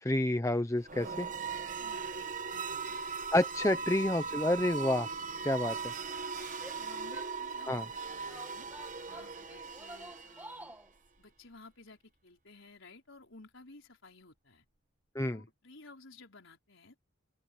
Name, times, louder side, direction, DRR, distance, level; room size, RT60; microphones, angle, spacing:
voice 1, 0.0-1.3 3.3-5.1 5.4-5.9 7.7-7.8 15.1-15.4, left 1 dB, 15° left, 0.8 m, -29 dB
sound 1, 0.8-10.7, right 5 dB, 35° right, 1.2 m, -39 dB
voice 2, 1.8-3.1 3.6-4.2 4.9-5.5 6.3-8.7 9.0-10.7 11.2-14.6 15.2-17.0, left 3 dB, 65° left, 4.8 m, -56 dB
Female speech woman speaking / Yell, 6.5-7.8 8.3-10.9, right 1 dB, 10° right, 1.5 m, -50 dB
open air
head